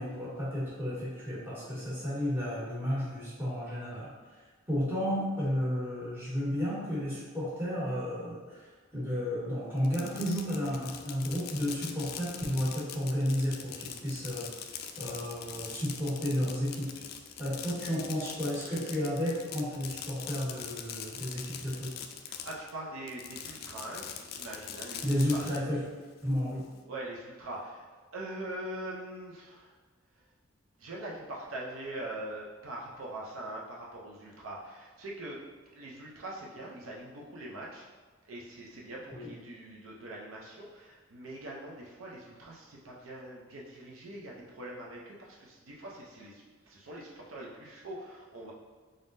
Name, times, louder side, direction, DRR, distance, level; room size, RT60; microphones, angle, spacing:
voice 1, 0.0-4.1 4.7-8.6 8.9-14.5 15.0-16.9 17.4-21.9 25.0-25.8 26.2-26.6 39.1-39.3, equal, 10° right, -10 dB, 1.5 m, -32 dB
Fireworks, 9.8-22.7 23.1-25.6, left 8 dB, 50° left, 0.3 m, -42 dB
voice 2, 22.3-25.4 26.9-27.9 28.1-29.8 30.8-35.5 35.7-37.9 38.3-48.5, right 1 dB, 80° right, -3 dB, 0.6 m, -43 dB
3.8 x 3.6 x 2.6 m, 1.4 s
head